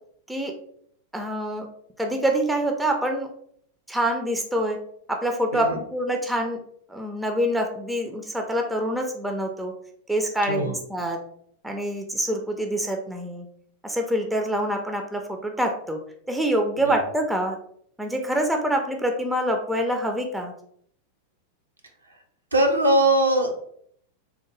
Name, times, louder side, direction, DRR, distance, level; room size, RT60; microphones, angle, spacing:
voice 1, 1.1-1.7 2.0-3.3 3.9-4.8 5.1-6.6 6.9-9.7 10.1-11.2 11.6-13.5 13.8-16.0 16.3-17.6 18.0-20.5, right 1 dB, 5° right, 3 dB, 0.4 m, -26 dB
voice 2, 22.5-23.5, right 1 dB, 80° right, 3 dB, 0.6 m, -20 dB
3.5 x 2.1 x 3.1 m, 0.65 s
figure-of-eight pair, 90°, 0 cm